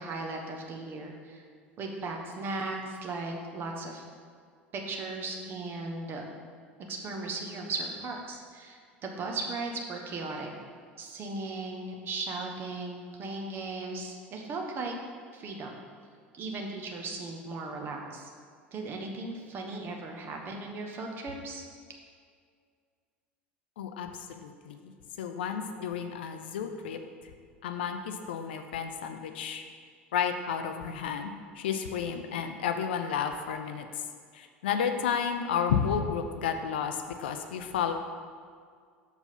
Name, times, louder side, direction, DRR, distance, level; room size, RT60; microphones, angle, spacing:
voice 1, 0.0-1.4 1.8-4.0 4.7-6.2 6.9-10.5 11.0-14.9 15.3-15.7 16.3-18.3 18.7-21.6, right 3 dB, 35° right, 1 dB, 1.1 m, -37 dB
voice 2, 23.8-24.9 25.2-27.0 27.6-29.6 30.1-33.9 34.3-37.9, left 7 dB, 65° left, 7 dB, 0.5 m, -32 dB
6.7 x 4.6 x 5.6 m, 2.1 s
figure-of-eight pair, 70°, 6 cm